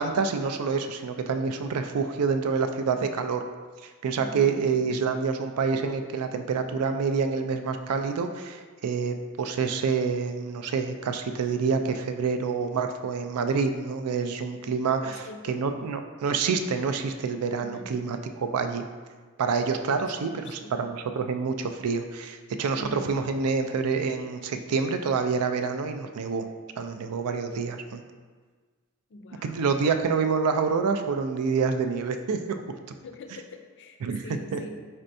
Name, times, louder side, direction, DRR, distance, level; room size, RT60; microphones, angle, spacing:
voice 1, 0.0-3.4 4.0-18.8 19.4-26.5 26.8-28.0 29.4-32.6 34.0-34.2 34.5-34.6, right 5 dB, 90° right, 7 dB, 0.4 m, -27 dB
voice 2, 4.2-4.5 15.0-15.5 17.6-18.0 20.0-20.7 22.8-23.1 29.1-29.9 33.0-34.0 34.2-34.7, left 2 dB, 55° left, 5 dB, 0.4 m, -43 dB
4.3 x 4.3 x 2.6 m, 1.5 s
head